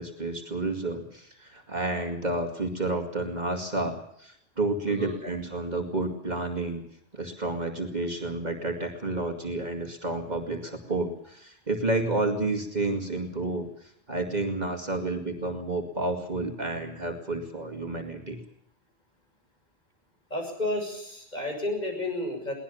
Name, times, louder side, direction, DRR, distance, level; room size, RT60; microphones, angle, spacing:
voice 1, 0.0-6.8 7.1-18.4, right 2 dB, 40° right, 4 dB, 2.5 m, -30 dB
voice 2, 4.9-5.2 20.3-22.5, left 1 dB, 40° left, 2 dB, 6.9 m, -31 dB
22.5 x 18.5 x 7.1 m, 0.69 s
omnidirectional pair, 1.1 m